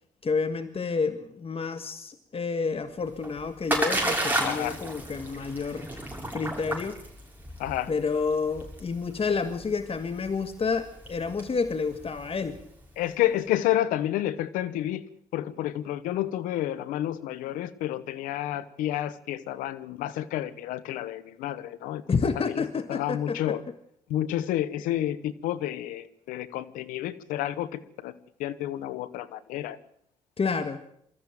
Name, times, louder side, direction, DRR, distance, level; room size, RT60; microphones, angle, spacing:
voice 1, 0.2-5.9 6.3-7.0 7.9-12.6 22.1-23.6 30.4-30.8, left 5 dB, 45° left, 9 dB, 1.6 m, -29 dB
Splash splatter, 3.0-12.8, right 1 dB, 15° right, 6.7 m, -33 dB
voice 2, 4.4-4.8 7.6-7.9 13.0-15.0 15.3-23.6 24.1-28.1 28.4-29.8, left 13 dB, 90° left, 15 dB, 1.0 m, -30 dB
23.0 x 14.0 x 9.0 m, 0.72 s
supercardioid pair, 50°, 14 cm